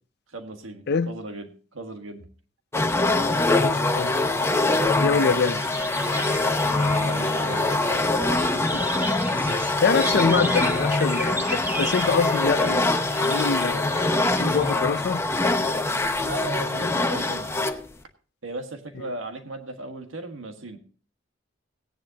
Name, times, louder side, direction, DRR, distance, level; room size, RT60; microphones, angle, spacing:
voice 1, 0.3-2.3 5.1-5.5 6.6-9.3 9.6-9.9 16.2-17.5 18.4-20.8, right 2 dB, 90° right, 1.7 m, -37 dB
sound 1, 2.7-17.9, left 2 dB, 15° left, 0.8 m, -24 dB
voice 2, 3.0-4.3 5.0-5.6 9.5-9.6 9.8-12.9 13.2-13.9 14.3-15.2, left 5 dB, 55° left, 0.5 m, -25 dB
sound 2, 5.3-14.7, right 1 dB, 10° right, 1.5 m, -35 dB
17.5 x 10.0 x 2.8 m
head